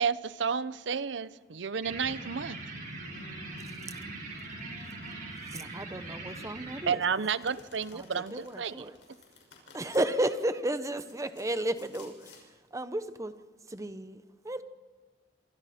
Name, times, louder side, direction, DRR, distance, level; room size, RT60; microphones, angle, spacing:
voice 1, 0.0-2.6 6.9-8.7, right 6 dB, 90° right, 16 dB, 0.7 m, -31 dB
sound 1, 1.8-6.8, right 2 dB, 50° right, 6.4 m, -41 dB
voice 2, 2.9-5.3, left 1 dB, 60° left, 1 dB, 2.1 m, -51 dB
voice 3, 5.5-7.3 7.9-9.0 9.7-13.4 13.7-14.6, right 1 dB, 20° right, 11 dB, 0.9 m, -33 dB
Domestic sounds home sounds, 7.4-10.0 10.8-12.4, left 4 dB, 85° left, 6.0 m, -55 dB
26.0 x 25.5 x 4.4 m, 1.4 s
head